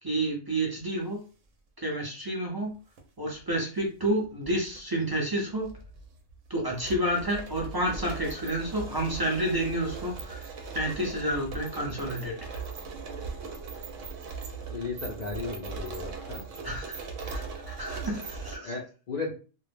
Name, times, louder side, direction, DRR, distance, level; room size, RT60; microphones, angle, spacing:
voice 1, 0.0-1.2 1.8-2.7 3.2-5.7 6.5-10.5 10.7-12.4 16.6-18.7, right 1 dB, 35° right, -1 dB, 0.4 m, -30 dB
sound 1, 2.7-3.0 4.0-4.8 5.1-5.2 5.6-18.6, right 4 dB, 90° right, 1.0 m, -39 dB
voice 2, 14.7-16.4 18.6-19.3, left 4 dB, 55° left, -2 dB, 0.5 m, -35 dB
2.3 x 2.0 x 3.3 m, 0.35 s
omnidirectional pair, 1.3 m